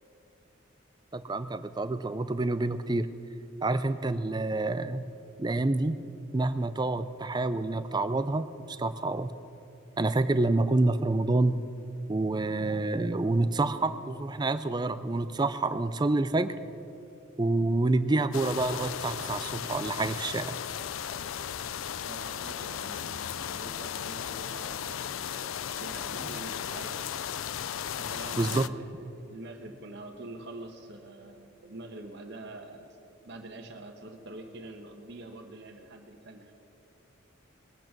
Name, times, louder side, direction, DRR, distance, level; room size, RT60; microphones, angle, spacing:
voice 1, 1.1-3.1 3.6-5.1 5.4-6.0 6.3-9.3 10.0-11.6 12.1-16.6 17.4-20.6 28.4-28.6, right 2 dB, 20° right, 12 dB, 0.4 m, -28 dB
sound 1, 18.3-28.7, left 9 dB, 75° left, 0.4 m, -36 dB
voice 2, 22.0-27.0 28.0-33.0 33.2-36.5, right 2 dB, 55° right, 3 dB, 1.2 m, -45 dB
20.0 x 9.2 x 6.0 m, 2.7 s
head